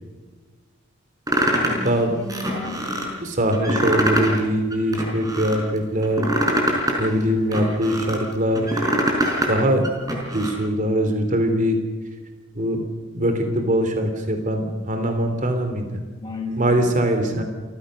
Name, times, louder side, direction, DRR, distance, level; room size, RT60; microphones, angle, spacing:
sound 1, 1.3-1.9 2.3-3.1 3.5-4.4 4.7-5.6 6.0-8.2 8.6-9.5 9.8-10.5, right 1 dB, 20° right, 5.0 m, -23 dB
voice 1, 1.5-3.4 16.1-16.9, left 2 dB, 15° left, -4 dB, 6.4 m, -33 dB
voice 2, 3.2-6.2 7.0-8.9 9.5-9.8 10.3-11.8 12.5-12.8 13.1-16.0 16.6-17.4, right 1 dB, 40° right, 6 dB, 3.4 m, -22 dB
28.5 x 15.5 x 6.6 m, 1.3 s
head